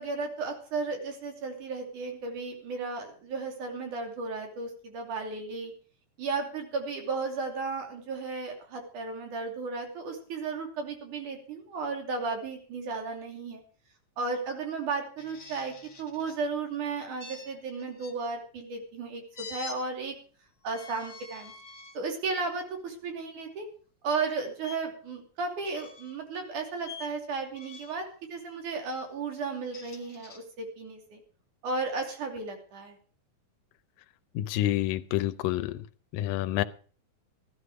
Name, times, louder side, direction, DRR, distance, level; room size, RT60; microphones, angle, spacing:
voice 1, 0.0-5.7 6.2-13.6 14.2-20.2 20.6-21.5 21.9-23.7 24.0-31.2 31.6-33.0, right 4 dB, 60° right, 4.4 m, -34 dB
sound 1, 15.2-16.4 17.2-18.2 19.3-19.8 20.6-22.0 22.6-22.8 24.6-24.8 25.6-26.2 26.8-27.1 27.5-28.0 29.5-30.4, left 4 dB, 40° left, 1.2 m, -46 dB
voice 2, 34.4-35.8 36.1-36.6, left 14 dB, 80° left, 2.3 m, -28 dB
16.0 x 11.5 x 4.9 m
omnidirectional pair, 4.0 m